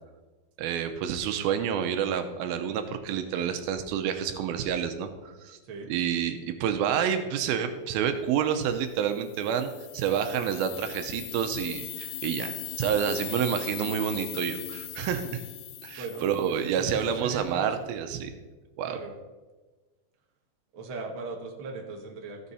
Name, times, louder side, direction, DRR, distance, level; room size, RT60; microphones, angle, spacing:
voice 1, 0.6-5.6 5.9-15.4 15.8-18.3 18.8-19.0, right 8 dB, 80° right, 8 dB, 2.5 m, -29 dB
sound 1, 9.0-16.9, left 12 dB, 85° left, 1.7 m, -39 dB
voice 2, 16.0-17.7 18.9-19.2 20.7-22.5, right 3 dB, 55° right, 0 dB, 1.4 m, -39 dB
14.0 x 6.4 x 4.1 m, 1.2 s
omnidirectional pair, 4.3 m